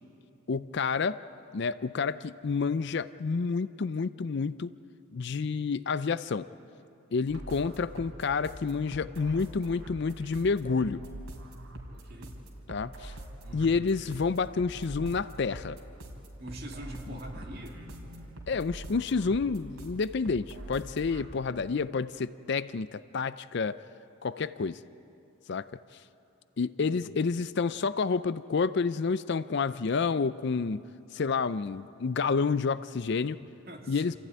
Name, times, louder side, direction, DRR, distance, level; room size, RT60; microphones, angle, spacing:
voice 1, 0.5-1.2 1.5-4.7 5.1-6.5 7.1-11.0 12.7-13.1 13.5-15.8 17.1-17.2 18.5-23.8 24.2-24.8 25.5-25.6 26.6-30.8 31.1-33.4 33.9-34.2, left 4 dB, 50° left, 15 dB, 0.4 m, -29 dB
sound 1, 7.3-21.3, right 1 dB, 90° right, 3.5 m, -44 dB
voice 2, 11.9-12.4 13.4-13.8 16.4-17.8 26.8-27.2 33.4-34.2, right 1 dB, 45° right, 0 dB, 2.7 m, -44 dB
27.0 x 14.5 x 9.4 m, 2.7 s
head